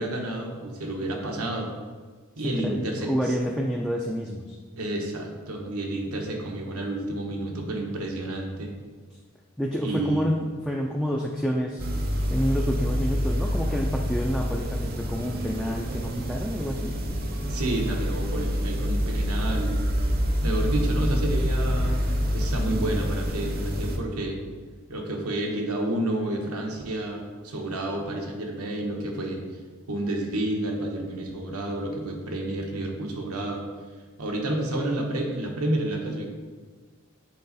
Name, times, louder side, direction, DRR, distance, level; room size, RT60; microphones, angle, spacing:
voice 1, 0.0-1.7 2.4-3.1 4.8-8.7 9.8-10.2 17.5-19.8 20.4-24.4 24.9-29.4 29.9-33.6 34.2-36.3, right 1 dB, 85° right, 1 dB, 1.1 m, -30 dB
voice 2, 2.4-4.6 9.6-11.9 12.3-16.9, equal, 5° left, -1 dB, 0.3 m, -28 dB
sound 1, 11.8-24.0, equal, 45° right, 0.7 m, -27 dB
7.6 x 4.2 x 4.1 m, 1.5 s
head